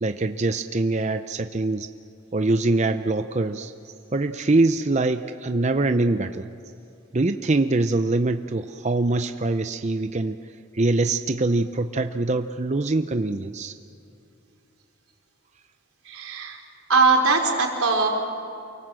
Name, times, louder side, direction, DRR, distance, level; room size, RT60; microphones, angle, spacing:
voice 1, 0.0-1.9 2.3-3.7 4.1-6.5 7.1-10.4 10.7-13.7, right 2 dB, 35° right, 8 dB, 0.6 m, -23 dB
voice 2, 16.0-16.6 16.9-18.1, right 4 dB, 90° right, 1 dB, 4.4 m, -20 dB
28.5 x 24.0 x 7.6 m, 2.7 s
head